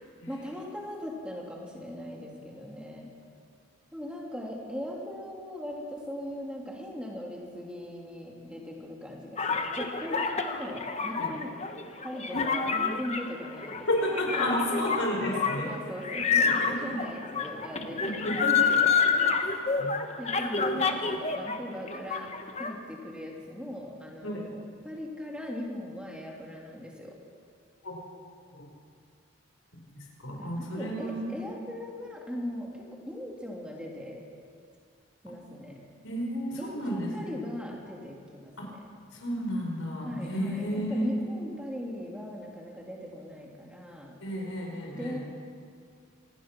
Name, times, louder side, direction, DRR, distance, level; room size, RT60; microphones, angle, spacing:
voice 1, 0.3-3.1 3.9-11.6 12.0-13.9 14.3-14.5 15.6-18.9 20.2-22.3 22.6-27.1 30.4-34.2 35.2-35.8 36.6-38.8 40.0-44.2 44.9-45.2, left 1 dB, 5° right, -2 dB, 2.8 m, -39 dB
sound 1, 9.4-21.6 21.9-22.7, left 5 dB, 30° left, 1.2 m, -28 dB
voice 2, 13.9-15.7 16.4-17.0 18.0-18.7 19.1-19.9 24.2-24.4 27.8-28.0 28.5-28.6 30.0-31.4 35.3-35.4 36.0-37.3 38.6-38.7 39.1-41.1 44.2-45.2, equal, 85° left, 0 dB, 4.8 m, -32 dB
26.5 x 19.0 x 6.0 m, 2.2 s
head